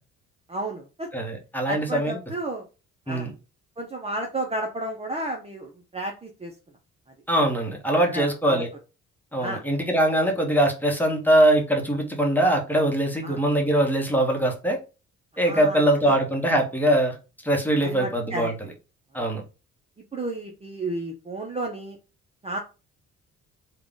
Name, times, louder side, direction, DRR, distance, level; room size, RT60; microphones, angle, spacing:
voice 1, 0.5-1.1 1.7-2.6 3.1-3.3 3.8-6.5 8.0-8.6 9.4-9.6 13.2-13.4 15.4-15.9 17.8-18.5 19.2-19.3 20.1-22.0 22.4-22.6, right 1 dB, 20° right, 2 dB, 0.7 m, -32 dB
voice 2, 1.1-2.2 3.1-3.3 7.3-8.7 9.3-14.8 15.4-17.1 17.4-18.5 19.1-19.4, right 1 dB, 5° left, 1 dB, 1.2 m, -22 dB
3.7 x 2.4 x 3.7 m, 0.31 s
cardioid pair, 90°, 30 cm